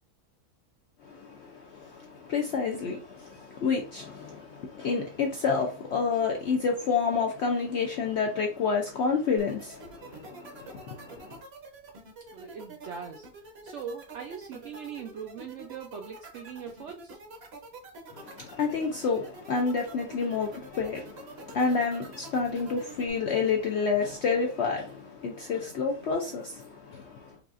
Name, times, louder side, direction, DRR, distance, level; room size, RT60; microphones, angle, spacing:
voice 1, 1.0-11.4 18.1-27.4, left 5 dB, 70° left, 0.6 m, -29 dB
sound 1, 9.4-23.1, right 3 dB, 50° right, 0.9 m, -46 dB
voice 2, 12.3-13.3 13.6-17.2, right 6 dB, 70° right, 0.6 m, -40 dB
4.7 x 2.4 x 2.5 m
omnidirectional pair, 1.7 m